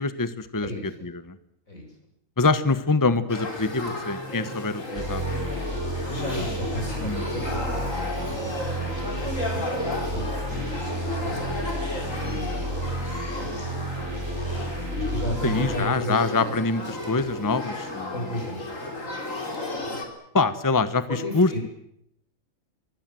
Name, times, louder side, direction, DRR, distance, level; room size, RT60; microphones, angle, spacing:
voice 1, 0.0-1.4 2.4-5.6 7.0-7.2 15.4-18.1 20.3-21.6, left 3 dB, 15° left, 13 dB, 1.1 m, -25 dB
voice 2, 0.6-1.1 1.7-1.9 6.0-8.6 8.9-9.6 9.9-11.8 12.2-13.0 13.3-14.5 14.9-16.5 18.1-18.8 21.1-21.6, left 1 dB, 90° left, 2 dB, 8.0 m, -35 dB
Male speech man speaking / Child speech kid speaking / Conversation, 3.3-20.1, left 2 dB, 70° left, 4.3 m, -33 dB
sound 1, 4.9-15.8, right 1 dB, 55° right, 5.5 m, -32 dB
24.5 x 23.5 x 7.8 m, 0.75 s
omnidirectional pair, 1.4 m